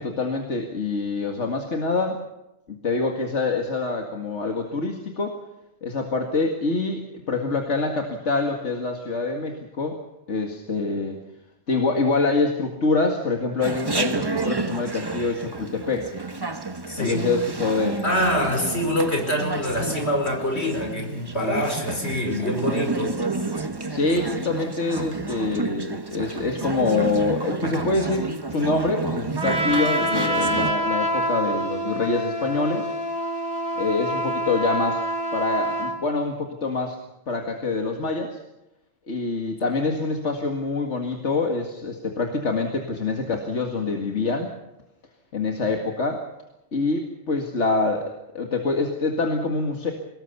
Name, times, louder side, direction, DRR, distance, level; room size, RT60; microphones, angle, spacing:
voice 1, 0.0-2.2 2.7-5.4 5.8-10.0 10.3-11.2 11.7-16.1 17.0-18.0 23.9-32.9 33.8-35.0 35.3-37.0 37.3-38.4 39.1-44.5 45.3-46.2 46.7-49.9, left 3 dB, 85° left, 3 dB, 2.3 m, -25 dB
Chatter, 13.6-30.7, right 3 dB, 20° right, 1.2 m, -30 dB
voice 2, 16.9-17.3 18.0-23.2, left 1 dB, 70° left, 3 dB, 5.3 m, -25 dB
Trumpet, 29.4-36.0, equal, 80° right, 3.8 m, -26 dB
23.5 x 20.0 x 7.0 m, 0.92 s
omnidirectional pair, 1.2 m